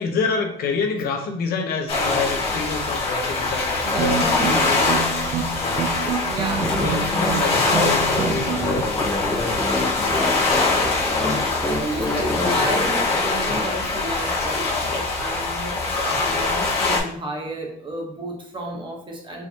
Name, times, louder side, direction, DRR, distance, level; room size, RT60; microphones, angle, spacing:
voice 1, 0.0-4.8 5.5-5.9 6.8-9.2, left 4 dB, 65° left, 3 dB, 0.9 m, -27 dB
sound 1, 1.9-17.0, left 3 dB, 35° left, 1.6 m, -23 dB
sound 2, 3.8-8.8, right 6 dB, 50° right, 0.5 m, -28 dB
voice 2, 3.9-4.8 6.3-7.0 11.6-19.4, right 1 dB, 30° right, 1 dB, 1.1 m, -32 dB
sound 3, 6.6-14.0, left 2 dB, 10° left, 0.7 m, -28 dB
4.7 x 3.2 x 2.8 m, 0.64 s
cardioid pair, 110°, 17 cm